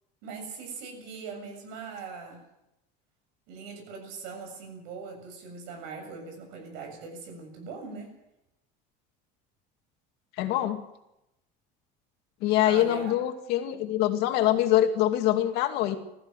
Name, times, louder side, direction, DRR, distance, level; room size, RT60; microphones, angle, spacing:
voice 1, 0.2-2.4 3.5-8.1 12.6-13.1, right 5 dB, 70° right, 3 dB, 7.3 m, -40 dB
voice 2, 10.4-10.8 12.4-16.0, left 13 dB, 60° left, 6 dB, 2.5 m, -24 dB
20.5 x 15.0 x 9.2 m, 0.88 s
cardioid pair, 175°, 19 cm